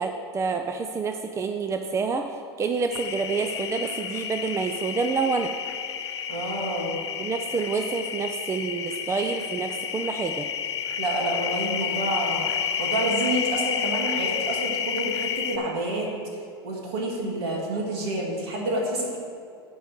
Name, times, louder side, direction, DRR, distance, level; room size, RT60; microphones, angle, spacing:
voice 1, 0.0-5.5 7.2-10.5, right 4 dB, 20° right, 6 dB, 0.5 m, -28 dB
sound 1, 2.9-15.6, left 8 dB, 80° left, 0.8 m, -30 dB
voice 2, 6.3-7.0 11.0-16.1 16.6-19.2, right 1 dB, 70° right, -2 dB, 2.8 m, -28 dB
10.0 x 4.7 x 7.8 m, 2.4 s
hypercardioid pair, 95°, 14 cm